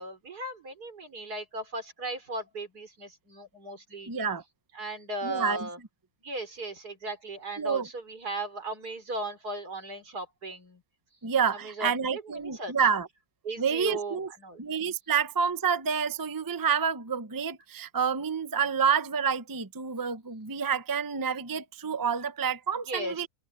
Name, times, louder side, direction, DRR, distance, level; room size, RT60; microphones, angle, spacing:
voice 1, 0.0-4.1 4.7-5.8 6.2-10.8 11.5-12.7 13.4-14.6 22.9-23.2, right 2 dB, 75° right, 4.4 m, -37 dB
voice 2, 4.1-4.4 5.2-5.7 7.6-7.9 11.2-13.1 13.6-14.3 14.6-23.3, right 6 dB, 20° right, 0.6 m, -28 dB
open air
omnidirectional pair, 1.7 m